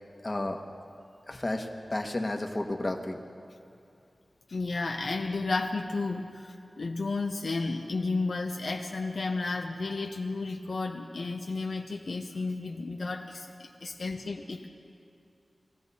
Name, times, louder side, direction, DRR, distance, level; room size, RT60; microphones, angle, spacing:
voice 1, 0.2-0.6 1.3-3.2, left 1 dB, 35° left, 3 dB, 1.2 m, -32 dB
voice 2, 4.5-14.7, left 3 dB, 75° left, 2 dB, 0.7 m, -32 dB
20.0 x 14.0 x 4.2 m, 2.5 s
wide cardioid pair, 60°, 0 cm